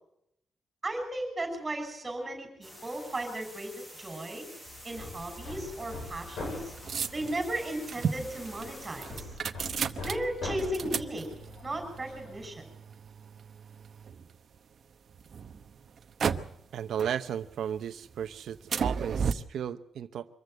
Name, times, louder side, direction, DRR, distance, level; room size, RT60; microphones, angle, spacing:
voice 1, 0.8-4.5 4.8-6.7 7.1-9.2 10.0-11.4 11.6-12.6, right 1 dB, 20° right, 6 dB, 6.3 m, -35 dB
sound 1, 2.6-9.4, equal, 15° left, 7.1 m, -49 dB
Hammer, 4.7-12.5, left 3 dB, 80° left, 7.9 m, -43 dB
sound 2, 5.4-14.6 15.1-16.7 17.0-17.8 18.1-19.3, right 6 dB, 50° right, 0.9 m, -35 dB
voice 2, 16.7-20.3, right 9 dB, 85° right, 8 dB, 0.8 m, -34 dB
24.5 x 15.0 x 7.9 m, 0.75 s
wide cardioid pair, 170°, 0 cm